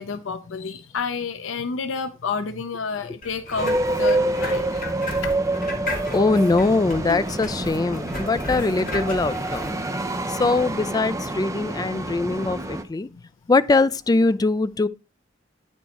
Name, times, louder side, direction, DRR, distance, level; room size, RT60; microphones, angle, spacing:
voice 1, 0.0-4.8 5.2-5.3, left 5 dB, 80° left, 0.6 m, -30 dB
sound 1, 3.2-9.7, left 2 dB, 45° left, 2.5 m, -35 dB
sound 2, 3.6-12.8, right 2 dB, 15° right, 0.6 m, -27 dB
voice 2, 6.1-9.7 10.3-13.1 13.5-14.9, left 3 dB, 20° left, 0.3 m, -22 dB
9.1 x 4.5 x 4.2 m
head